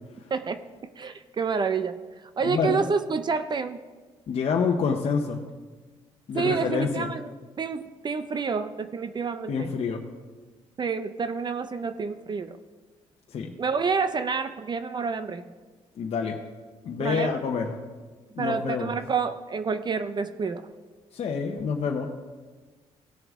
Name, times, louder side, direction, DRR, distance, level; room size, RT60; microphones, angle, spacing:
voice 1, 0.3-0.6 1.0-2.0 2.4-3.8 6.3-7.3 7.6-9.7 10.8-12.6 13.6-15.5 17.0-17.4 18.4-20.7, right 5 dB, 40° right, 11 dB, 0.6 m, -28 dB
voice 2, 2.4-2.9 4.3-5.5 6.3-7.1 9.5-10.1 13.3-13.5 16.0-16.4 16.8-17.8 18.3-19.0 21.1-22.1, left 5 dB, 60° left, 1 dB, 0.9 m, -27 dB
17.0 x 6.8 x 3.7 m, 1.3 s
cardioid pair, 85°, 12 cm